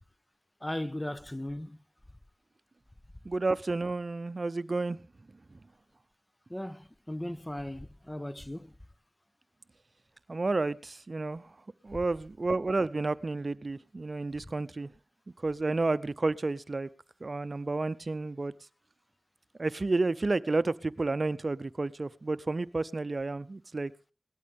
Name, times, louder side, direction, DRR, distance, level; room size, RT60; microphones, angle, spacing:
voice 1, 0.6-1.8 6.5-8.7, left 1 dB, 15° left, 0.6 m, -37 dB
voice 2, 3.2-5.0 10.3-11.4 11.8-14.9 15.4-16.9 17.2-18.5 19.6-24.1, right 3 dB, 55° right, 0.6 m, -31 dB
18.0 x 13.0 x 3.5 m
cardioid pair, 40°, 0 cm